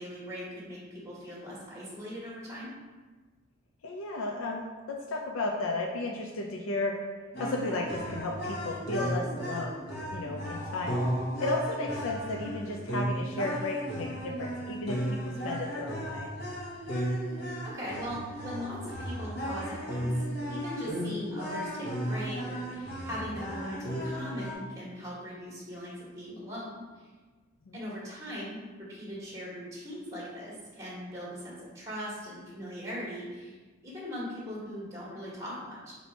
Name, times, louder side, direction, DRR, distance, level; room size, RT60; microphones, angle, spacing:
voice 1, 0.0-2.7 12.5-12.8 17.7-27.1 27.7-33.6 33.8-35.9, equal, 15° right, -6 dB, 1.3 m, -40 dB
voice 2, 3.8-7.0 7.4-9.8 10.1-11.0 11.4-15.0 15.4-16.3 27.7-27.8, left 2 dB, 80° left, 1 dB, 0.5 m, -33 dB
sound 1, 7.3-24.5, equal, 50° left, 1.2 m, -35 dB
4.3 x 2.7 x 4.5 m, 1.3 s
head